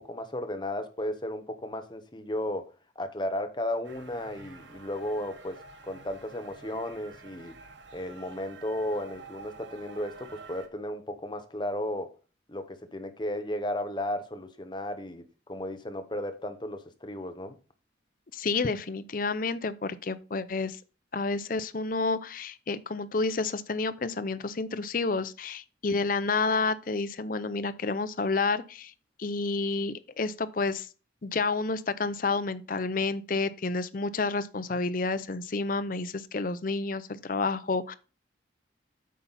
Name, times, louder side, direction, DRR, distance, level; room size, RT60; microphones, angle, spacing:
voice 1, 0.0-7.5 7.9-12.1 12.5-17.6, left 1 dB, 25° left, 1.0 m, -34 dB
sound 1, 3.8-10.7, right 4 dB, 75° right, 1.1 m, -49 dB
voice 2, 18.3-20.8 21.1-28.9 29.2-30.9 31.2-38.0, left 3 dB, 45° left, 0.6 m, -30 dB
8.4 x 5.6 x 4.2 m
head